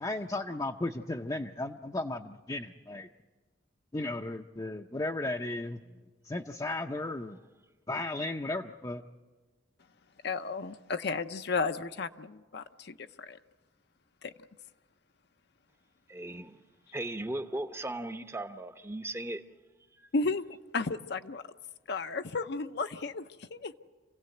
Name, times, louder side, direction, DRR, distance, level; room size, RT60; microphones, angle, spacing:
voice 1, 0.0-3.1 3.9-5.8 6.2-7.4 7.9-9.0, left 2 dB, 20° left, 0.6 m, -35 dB
voice 2, 10.2-13.4 14.2-14.3 20.1-20.4 20.7-21.4 21.9-23.7, left 4 dB, 60° left, 0.7 m, -33 dB
voice 3, 16.1-16.7 16.9-19.4, right 1 dB, 15° right, 0.8 m, -37 dB
27.0 x 16.5 x 7.9 m
head